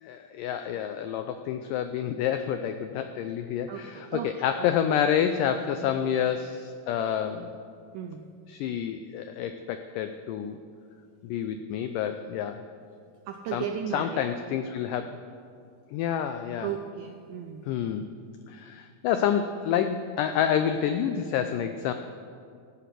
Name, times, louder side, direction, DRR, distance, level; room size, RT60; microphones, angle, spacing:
voice 1, 0.0-7.5 8.5-10.6 11.2-12.7 13.5-13.6 13.9-15.1 15.9-16.7 17.6-18.1 18.5-21.9, left 9 dB, 90° left, 8 dB, 1.9 m, -28 dB
voice 2, 3.7-4.3 4.6-4.7 5.2-5.3 5.8-6.0 7.9-8.3 13.3-14.2 16.6-17.7, right 9 dB, 85° right, 5 dB, 1.9 m, -35 dB
15.5 x 5.9 x 8.2 m, 2.3 s
omnidirectional pair, 4.4 m